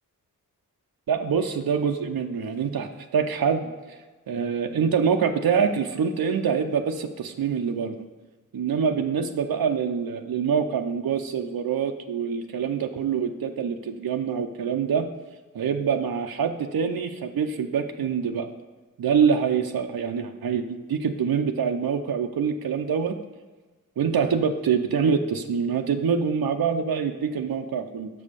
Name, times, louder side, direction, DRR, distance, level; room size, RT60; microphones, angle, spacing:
voice 1, 1.1-4.0 4.3-8.1 8.5-15.1 15.5-18.5 19.0-23.2 24.0-28.1, right 6 dB, 90° right, 5 dB, 0.6 m, -25 dB
6.2 x 5.4 x 6.6 m, 1.3 s
wide cardioid pair, 80°, 35 cm